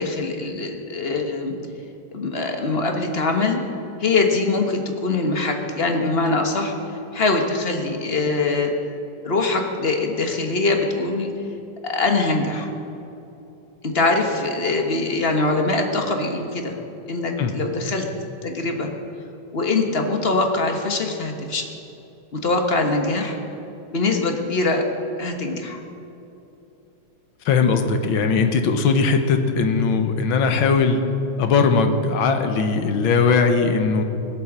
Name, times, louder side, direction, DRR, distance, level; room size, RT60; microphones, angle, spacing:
voice 1, 0.0-1.5 2.1-3.6 4.0-6.7 7.1-8.7 9.2-11.3 11.8-12.7 13.8-16.8 17.1-18.0 18.4-18.9 19.5-21.7 22.3-23.4 23.9-24.8 25.2-25.8, left 3 dB, 35° left, 3 dB, 1.4 m, -23 dB
voice 2, 27.5-31.0 31.4-34.0, left 5 dB, 75° left, 6 dB, 1.9 m, -19 dB
20.0 x 8.4 x 7.4 m, 2.9 s
omnidirectional pair, 2.2 m